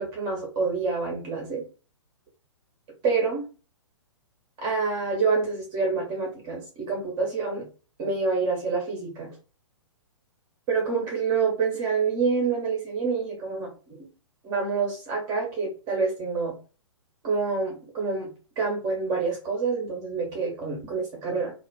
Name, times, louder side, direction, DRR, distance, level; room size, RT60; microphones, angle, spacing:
voice 1, 0.0-1.6 3.0-3.4 4.6-7.7 8.0-9.3 10.7-14.1 14.4-16.6 17.2-21.5, right 4 dB, 25° right, -1 dB, 0.9 m, -27 dB
2.4 x 2.3 x 2.2 m, 0.34 s
figure-of-eight pair, 120°, 16 cm